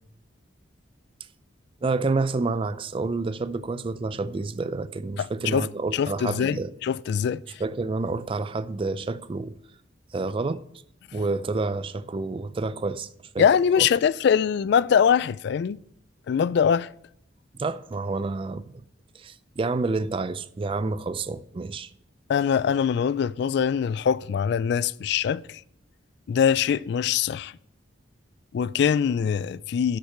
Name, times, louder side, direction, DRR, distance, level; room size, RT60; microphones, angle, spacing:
voice 1, 1.8-6.7 7.6-9.6 10.1-10.6 11.1-13.1 13.3-13.5 13.8-13.9 17.6-18.7 19.2-21.9, right 3 dB, 30° right, 0.4 m, -29 dB
voice 2, 5.2-7.4 13.4-15.8 16.3-16.9 22.3-25.6 26.3-27.5 28.5-30.0, left 7 dB, 60° left, 0.3 m, -23 dB
7.9 x 6.6 x 6.5 m
head